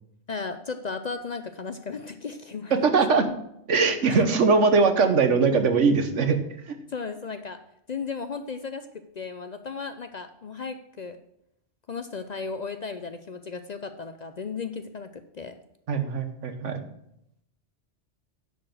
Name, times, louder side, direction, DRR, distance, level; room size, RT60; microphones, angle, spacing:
voice 1, 0.3-2.8 4.1-4.2 6.9-7.6 7.9-8.9 9.1-11.2 11.9-15.5, left 5 dB, 50° left, 9 dB, 0.5 m, -35 dB
voice 2, 2.8-3.2 3.7-6.4 6.7-6.8 15.9-16.8, right 4 dB, 85° right, 8 dB, 1.4 m, -21 dB
10.0 x 4.8 x 7.6 m, 0.77 s
omnidirectional pair, 1.2 m